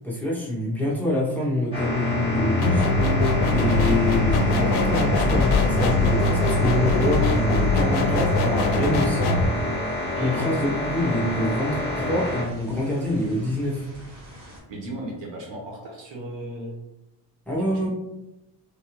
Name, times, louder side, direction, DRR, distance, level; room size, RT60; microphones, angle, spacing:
voice 1, 0.0-2.9 3.5-9.5 10.2-13.9 17.5-17.9, left 1 dB, 5° left, -5 dB, 0.6 m, -26 dB
sound 1, 1.7-12.4, left 1 dB, 15° right, 0.9 m, -27 dB
sound 2, 2.6-9.5, left 2 dB, 70° left, 0.5 m, -22 dB
sound 3, 3.2-14.6, equal, 70° right, 1.3 m, -37 dB
voice 2, 10.0-10.4 14.7-16.8 17.6-17.9, right 1 dB, 90° right, -2 dB, 1.1 m, -36 dB
3.4 x 2.2 x 2.9 m, 0.94 s
cardioid pair, 140°, 42 cm